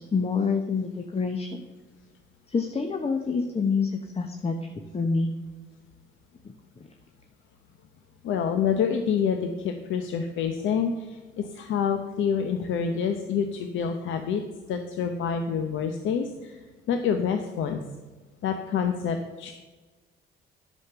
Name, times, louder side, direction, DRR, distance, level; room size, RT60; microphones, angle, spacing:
voice 1, 0.0-1.6 2.5-5.3 6.4-6.5, left 4 dB, 30° left, 5 dB, 1.0 m, -27 dB
voice 2, 8.2-14.4 14.7-16.6 16.9-17.8 18.4-19.5, left 7 dB, 75° left, 6 dB, 0.9 m, -27 dB
9.7 x 6.5 x 6.8 m, 1.2 s
cardioid pair, 90°, 20 cm